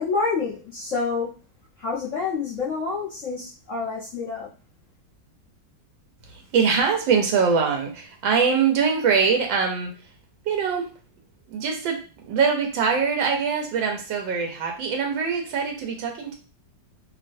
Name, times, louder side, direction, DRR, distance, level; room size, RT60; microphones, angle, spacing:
voice 1, 0.0-1.3 1.8-4.5, left 4 dB, 55° left, -7 dB, 0.9 m, -28 dB
voice 2, 6.3-9.9 10.4-10.9 11.5-16.4, right 6 dB, 85° right, 2 dB, 1.4 m, -23 dB
3.0 x 2.7 x 2.5 m, 0.35 s
omnidirectional pair, 2.0 m